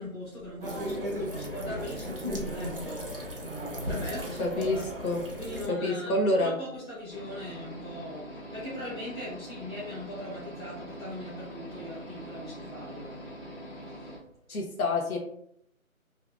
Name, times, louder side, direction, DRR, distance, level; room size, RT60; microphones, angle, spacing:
voice 1, 0.0-3.1 3.5-4.8 5.4-6.1 6.4-13.3, left 1 dB, 20° left, -13 dB, 1.0 m, -40 dB
sound 1, 0.6-5.7, equal, 40° right, 0.5 m, -35 dB
voice 2, 4.4-5.2 5.7-6.6 14.5-15.2, left 2 dB, 80° left, 0 dB, 1.0 m, -27 dB
sound 2, 7.1-14.2, equal, 55° left, 1.3 m, -43 dB
2.8 x 2.5 x 2.3 m, 0.71 s
figure-of-eight pair, 170°, 42 cm